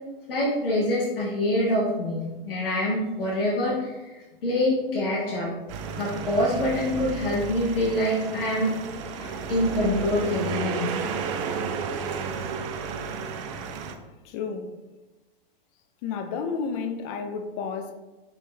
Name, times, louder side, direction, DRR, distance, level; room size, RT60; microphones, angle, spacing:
voice 1, 0.3-4.1 4.4-5.5 6.0-8.7 9.2-10.9, left 1 dB, 70° left, -5 dB, 1.2 m, -25 dB
sound 1, 5.7-13.9, right 5 dB, 35° right, 0.4 m, -32 dB
voice 2, 14.2-14.7 16.0-17.9, left 5 dB, 30° left, 6 dB, 0.4 m, -31 dB
4.4 x 3.0 x 3.2 m, 1.1 s
figure-of-eight pair, 100°, 29 cm